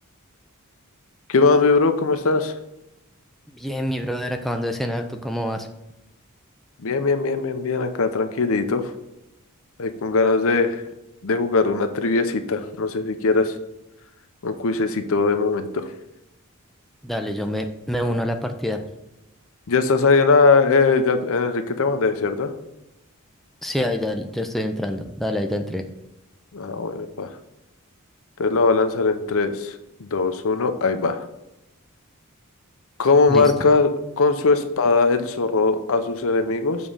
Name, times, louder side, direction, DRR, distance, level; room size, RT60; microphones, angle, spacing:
voice 1, 1.3-2.5 6.8-8.9 9.8-10.8 11.2-13.5 14.4-15.9 19.7-22.5 26.5-27.3 28.4-29.7 30.0-31.2 33.0-33.9 34.2-36.8, left 4 dB, 65° left, 9 dB, 0.7 m, -20 dB
voice 2, 3.5-5.7 17.0-18.8 23.6-25.8 33.3-33.7, equal, ahead, 4 dB, 0.4 m, -26 dB
7.1 x 3.7 x 5.5 m, 0.91 s
head